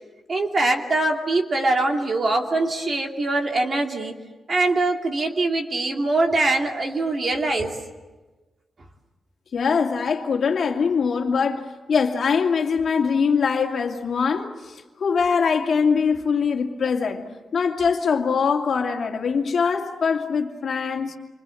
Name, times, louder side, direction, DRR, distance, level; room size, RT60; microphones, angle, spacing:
voice 1, 0.3-4.1 4.5-7.7, right 2 dB, 35° right, 2.7 m, -23 dB
voice 2, 9.5-17.2 17.5-21.2, left 5 dB, 50° left, 2.5 m, -22 dB
28.5 x 25.5 x 7.8 m
wide cardioid pair, 170°, 0 cm